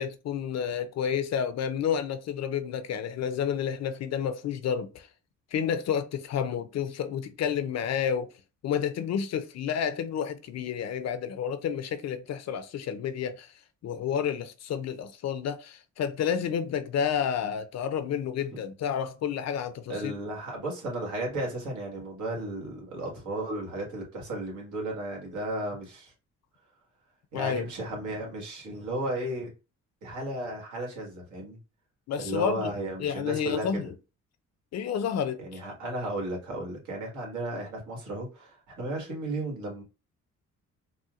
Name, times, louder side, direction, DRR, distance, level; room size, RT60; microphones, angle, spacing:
voice 1, 0.0-5.1 5.5-8.3 8.6-13.5 13.8-20.1 27.3-27.6 32.1-32.7 33.0-33.9 34.7-35.6, left 8 dB, 60° left, 0.5 m, -30 dB
voice 2, 19.9-26.1 27.3-29.5 30.0-31.6 32.2-33.9 35.4-39.8, right 1 dB, 75° right, 1.7 m, -34 dB
4.2 x 2.1 x 2.4 m
cardioid pair, 90°, 30 cm